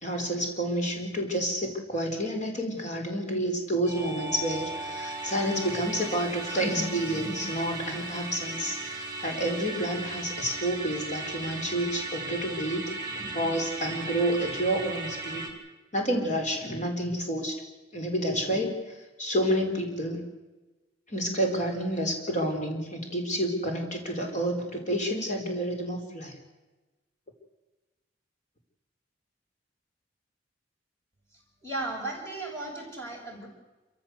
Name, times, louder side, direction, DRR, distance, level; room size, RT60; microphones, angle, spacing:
voice 1, 0.0-15.5 15.9-17.6 17.9-18.7 19.2-20.2 21.1-26.4, right 1 dB, 40° left, 3 dB, 4.5 m, -29 dB
Musical instrument, 3.8-15.5, right 2 dB, 20° right, 4.4 m, -37 dB
voice 2, 31.6-33.5, right 2 dB, 15° left, -1 dB, 6.6 m, -35 dB
28.0 x 14.5 x 8.1 m, 1.1 s
head